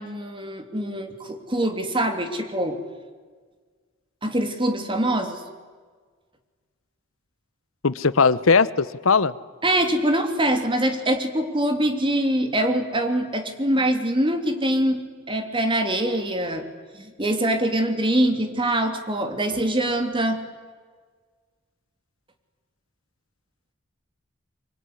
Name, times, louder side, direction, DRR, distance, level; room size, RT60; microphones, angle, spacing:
voice 1, 0.0-2.8 4.2-5.4 9.6-16.7 17.0-20.4, right 1 dB, 25° right, 5 dB, 3.1 m, -24 dB
voice 2, 7.8-9.3, left 4 dB, 85° left, 17 dB, 0.9 m, -19 dB
24.5 x 24.5 x 9.9 m, 1.5 s
head